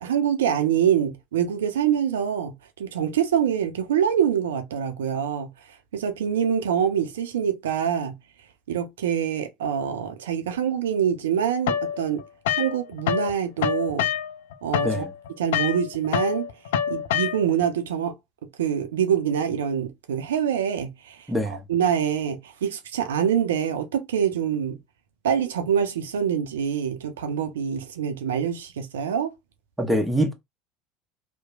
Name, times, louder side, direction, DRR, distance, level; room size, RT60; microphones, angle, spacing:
voice 1, 0.0-2.5 2.8-5.5 5.9-8.1 8.7-12.2 12.6-14.1 14.6-15.1 15.4-16.4 16.9-18.1 18.6-21.2 21.5-24.8 25.2-29.3, right 8 dB, 80° right, 0.5 m, -25 dB
sound 1, 11.7-13.3 13.6-17.7, left 9 dB, 75° left, 0.3 m, -26 dB
voice 2, 21.3-21.6 29.8-30.3, equal, 5° right, 1.0 m, -24 dB
2.8 x 2.1 x 2.4 m
hypercardioid pair, 70°, 0 cm